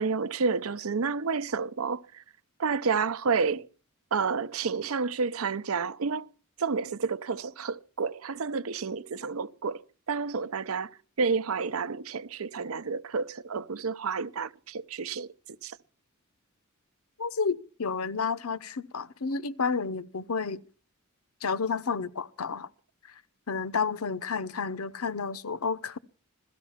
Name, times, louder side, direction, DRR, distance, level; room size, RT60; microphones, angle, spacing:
voice 1, 0.0-2.2 2.6-3.7 4.1-6.3 6.6-9.8 10.1-10.9 11.2-15.3 15.6-15.8, right 5 dB, 75° right, 0.7 m, -30 dB
voice 2, 17.2-20.6 21.4-22.7 23.5-26.0, left 5 dB, 85° left, 0.8 m, -31 dB
17.5 x 13.0 x 5.7 m
head